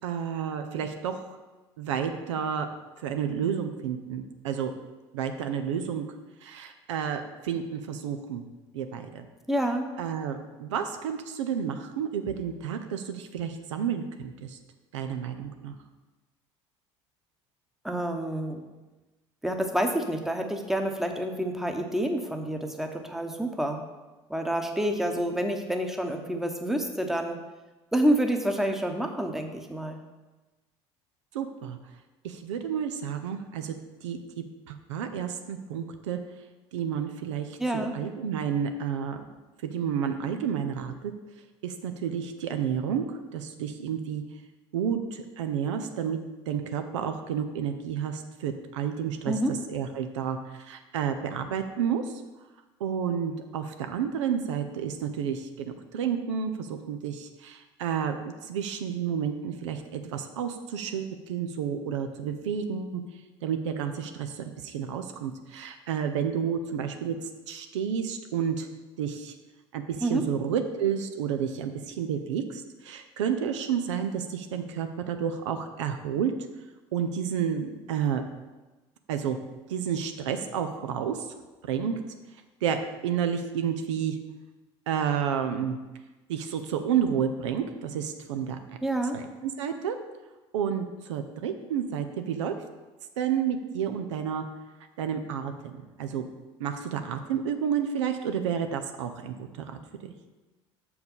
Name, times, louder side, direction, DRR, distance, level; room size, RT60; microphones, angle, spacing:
voice 1, 0.0-1.4 1.8-2.7 3.0-4.7 5.1-6.1 6.4-8.4 8.7-9.2 10.0-14.6 14.9-15.8 31.3-31.8 32.2-34.2 34.7-36.2 36.7-39.2 39.6-41.1 41.6-44.2 44.7-46.2 46.5-52.1 52.8-63.0 63.4-67.2 67.5-68.7 69.0-69.3 69.7-76.3 76.9-78.2 79.1-79.4 79.7-81.3 81.6-81.9 82.6-84.2 84.9-85.8 86.3-88.6 89.1-90.0 90.5-92.6 93.2-94.4 95.0-96.3 96.6-100.1, right 8 dB, 85° right, 7 dB, 0.6 m, -30 dB
voice 2, 9.5-9.9 17.8-18.6 19.4-23.8 24.3-27.4 27.9-30.0 37.6-37.9 49.3-49.6 70.0-70.3 88.8-89.2, right 1 dB, ahead, 4 dB, 0.9 m, -28 dB
6.5 x 4.7 x 5.4 m, 1.2 s
hypercardioid pair, 70°, 15 cm